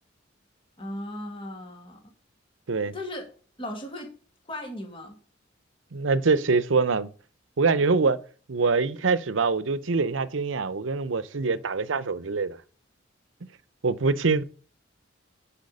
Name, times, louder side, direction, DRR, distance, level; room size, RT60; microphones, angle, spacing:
voice 1, 0.8-2.1 2.9-3.3 3.6-4.1 4.5-5.2, left 1 dB, 25° left, 2.0 m, -37 dB
voice 2, 5.9-7.1 7.6-8.2 8.5-12.6 13.8-14.4, right 4 dB, 85° right, 0.7 m, -24 dB
10.5 x 5.7 x 5.5 m
head